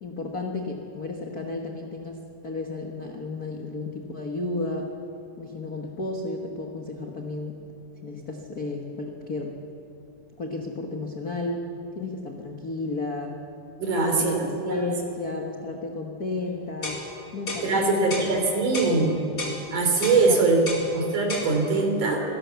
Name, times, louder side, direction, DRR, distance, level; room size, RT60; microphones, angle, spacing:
voice 1, 0.0-4.9 5.4-7.6 8.0-9.6 10.4-11.7 11.9-13.4 14.0-17.0 17.3-19.1 20.3-21.1, left 2 dB, 50° left, 1 dB, 1.1 m, -33 dB
voice 2, 13.8-14.9 17.6-19.2 19.7-20.6 21.0-22.2, right 3 dB, 65° right, 2 dB, 4.7 m, -22 dB
sound 1, 16.8-17.0 17.5-17.7 18.1-18.3 18.7-19.0 19.4-19.6 20.0-20.2 20.7-20.9 21.3-21.5, left 2 dB, 25° left, 3.0 m, -32 dB
25.5 x 18.0 x 7.0 m, 2.8 s
omnidirectional pair, 3.9 m